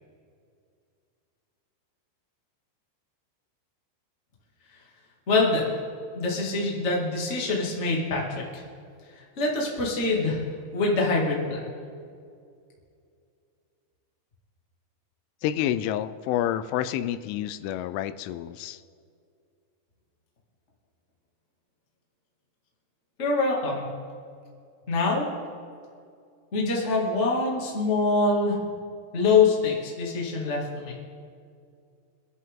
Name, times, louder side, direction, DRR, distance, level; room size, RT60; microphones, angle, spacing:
voice 1, 5.3-5.8 6.1-8.6 9.4-10.4 10.7-11.6 23.2-23.9 24.9-25.3 26.5-28.6 29.1-30.9, left 3 dB, 30° left, -3 dB, 1.3 m, -24 dB
voice 2, 15.4-18.8, left 11 dB, 85° left, 13 dB, 3.0 m, -28 dB
25.0 x 10.5 x 3.7 m, 2.3 s
omnidirectional pair, 5.5 m